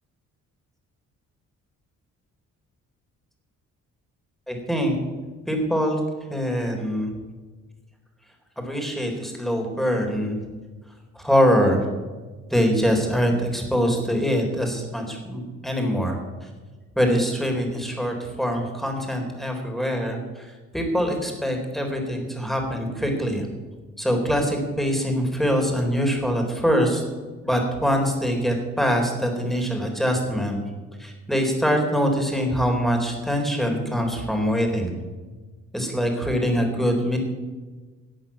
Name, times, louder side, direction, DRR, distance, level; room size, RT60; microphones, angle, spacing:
voice 1, 4.5-4.9 5.5-6.0 6.3-7.1 8.7-10.5 11.1-11.9 12.5-16.5 17.0-23.5 24.0-27.0 27.4-30.6 31.0-34.9 35.7-37.2, equal, ahead, 2 dB, 3.9 m, -24 dB
13.0 x 8.1 x 8.7 m, 1.3 s
cardioid pair, 90°, 30 cm